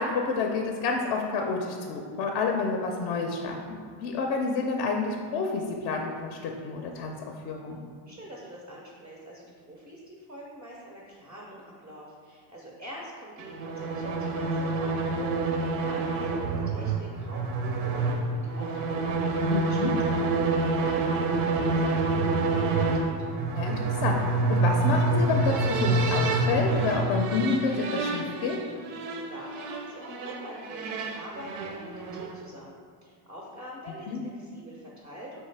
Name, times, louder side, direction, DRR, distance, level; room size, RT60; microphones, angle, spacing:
voice 1, 0.0-7.1 7.4-7.8 19.5-19.9 23.5-23.7 24.0-24.2 24.5-28.6 34.1-34.2, left 4 dB, 55° left, 2 dB, 0.5 m, -29 dB
voice 2, 8.1-18.1 18.5-19.8 20.1-23.2 29.1-32.7 33.0-35.4, equal, 10° right, -3 dB, 0.4 m, -44 dB
sound 1, 13.4-32.4, right 3 dB, 85° right, 0.6 m, -27 dB
4.5 x 3.1 x 3.2 m, 2.1 s
cardioid pair, 135°, 47 cm